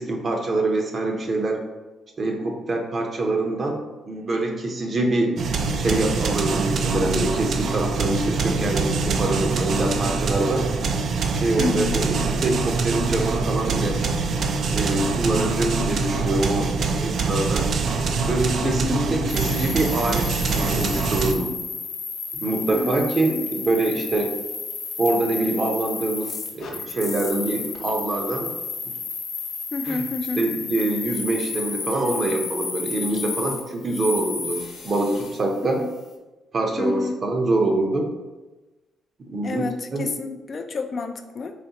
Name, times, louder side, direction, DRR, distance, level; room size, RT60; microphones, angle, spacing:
voice 1, 0.0-1.6 2.2-3.8 4.0-5.3 5.8-10.7 11.3-14.0 14.7-16.7 17.0-17.7 18.3-20.3 20.5-21.5 22.3-24.4 25.0-28.5 29.8-30.1 30.3-35.8 36.5-38.1 39.3-40.3, right 2 dB, 40° right, 2 dB, 0.7 m, -25 dB
sound 1, 5.4-21.3, right 4 dB, 60° right, 0.3 m, -24 dB
voice 2, 11.6-12.0 18.6-19.3 22.7-23.4 29.7-30.5 35.8-35.9 36.8-37.5 39.4-41.5, left 3 dB, 45° left, 7 dB, 0.3 m, -29 dB
sound 2, 19.3-35.4, left 5 dB, 70° left, 0.7 m, -32 dB
4.1 x 3.1 x 2.8 m, 1.1 s
cardioid pair, 90°, 0 cm